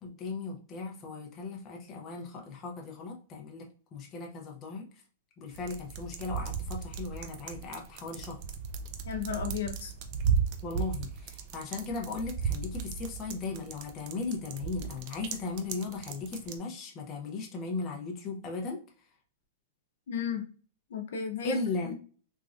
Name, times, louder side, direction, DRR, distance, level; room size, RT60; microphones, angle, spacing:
voice 1, 0.0-4.9 5.4-8.4 10.6-18.8 21.4-21.9, left 4 dB, 20° left, 0 dB, 0.5 m, -37 dB
sound 1, 5.5-16.6, right 6 dB, 40° right, 0.4 m, -35 dB
voice 2, 9.1-9.9 20.1-20.4 20.9-21.6 21.9-22.0, left 7 dB, 70° left, 4 dB, 0.7 m, -33 dB
3.1 x 2.4 x 2.4 m, 0.39 s
supercardioid pair, 165°, 0 cm